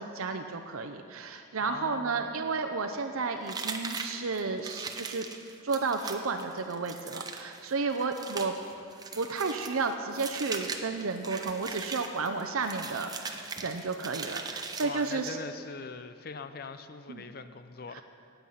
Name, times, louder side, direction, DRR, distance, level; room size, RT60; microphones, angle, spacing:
voice 1, 0.0-5.3 5.6-8.6 9.2-15.4 17.1-17.2 17.9-18.0, right 4 dB, 90° right, 5 dB, 0.7 m, -32 dB
voice 2, 1.6-2.2 14.8-18.0, left 4 dB, 45° left, 10 dB, 0.5 m, -41 dB
sound 1, 3.5-15.4, right 4 dB, 20° right, 0.7 m, -40 dB
18.0 x 8.1 x 5.7 m, 2.5 s
head